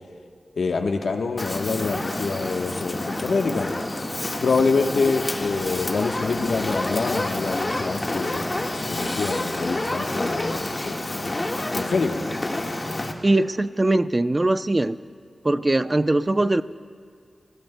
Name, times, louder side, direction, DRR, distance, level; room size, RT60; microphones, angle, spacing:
voice 1, 0.6-3.7 4.4-8.4 8.7-11.3 11.7-12.2, left 4 dB, 85° left, 4 dB, 1.1 m, -26 dB
Fire, 1.4-13.1, left 1 dB, 35° left, 1.6 m, -28 dB
voice 2, 13.2-15.0 15.4-16.6, right 2 dB, 35° right, 12 dB, 0.5 m, -21 dB
27.0 x 16.5 x 2.2 m, 2.2 s
cardioid pair, 45°, 0 cm